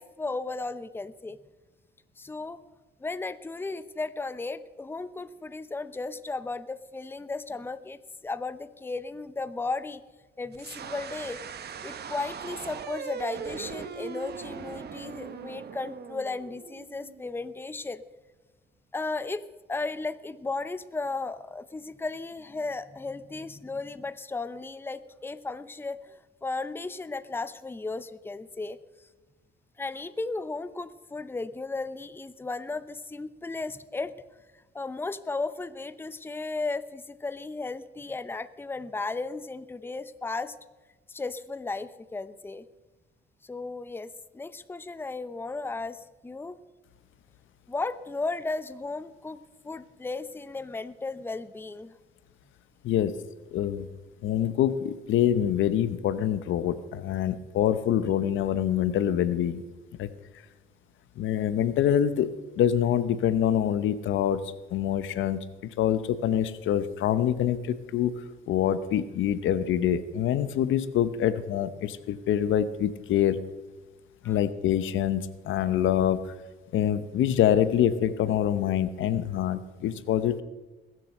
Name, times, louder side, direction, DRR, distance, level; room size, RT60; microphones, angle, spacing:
voice 1, 0.0-1.4 2.2-2.6 3.0-10.0 10.4-11.4 11.8-18.0 18.9-19.4 19.7-26.2 26.4-28.8 29.8-34.1 34.7-40.5 41.1-42.7 43.4-46.6 47.7-49.4 49.6-51.9 74.2-74.4, left 3 dB, 10° left, 13 dB, 0.6 m, -35 dB
sound 1, 10.5-17.4, right 6 dB, 55° right, 1.1 m, -40 dB
voice 2, 53.5-53.9 54.2-59.6 60.0-60.1 61.2-62.3 62.6-64.4 64.7-65.4 65.8-73.4 74.2-76.3 76.7-80.4, left 10 dB, 80° left, 14 dB, 0.8 m, -25 dB
21.0 x 7.6 x 6.5 m, 1.2 s
cardioid pair, 90°, 20 cm